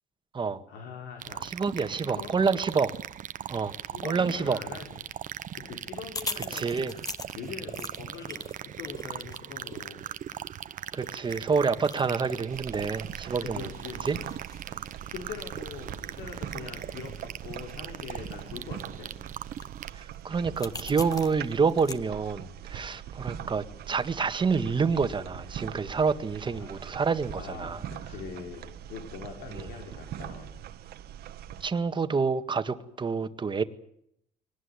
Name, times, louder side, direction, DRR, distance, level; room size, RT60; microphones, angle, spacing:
voice 1, 0.7-2.3 3.7-5.1 5.5-6.7 7.3-10.0 13.4-14.2 15.0-19.1 26.4-26.8 27.4-30.6, left 6 dB, 85° left, 2 dB, 4.9 m, -43 dB
sound 1, 1.2-19.9, right 10 dB, 50° right, 1.0 m, -40 dB
voice 2, 1.4-2.9 3.5-3.7 4.0-4.6 6.5-6.9 10.9-13.7 14.0-14.2 19.9-27.8 29.6-29.7 31.6-33.6, right 5 dB, 30° right, 10 dB, 1.8 m, -28 dB
sound 2, 4.6-22.0, left 3 dB, 20° left, 1.6 m, -45 dB
sound 3, 12.5-31.7, right 10 dB, 70° right, 1.6 m, -42 dB
23.0 x 19.0 x 9.8 m, 0.73 s
cardioid pair, 110°, 17 cm